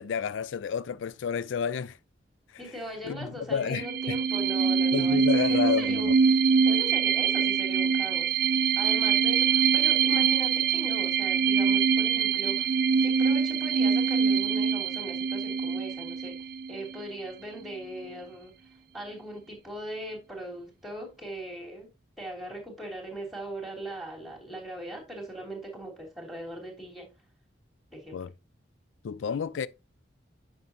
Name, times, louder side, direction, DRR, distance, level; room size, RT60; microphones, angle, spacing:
voice 1, 0.0-2.0 3.0-4.2 4.9-6.2 28.1-28.3 29.0-29.7, left 7 dB, 85° left, 0.4 m, -30 dB
voice 2, 2.6-6.1 6.6-8.3 8.8-18.5 18.9-21.9 22.2-27.1 27.9-28.3, right 1 dB, ahead, 3.1 m, -40 dB
sound 1, 3.7-17.0, right 6 dB, 50° right, 0.3 m, -24 dB
9.5 x 6.4 x 2.8 m
head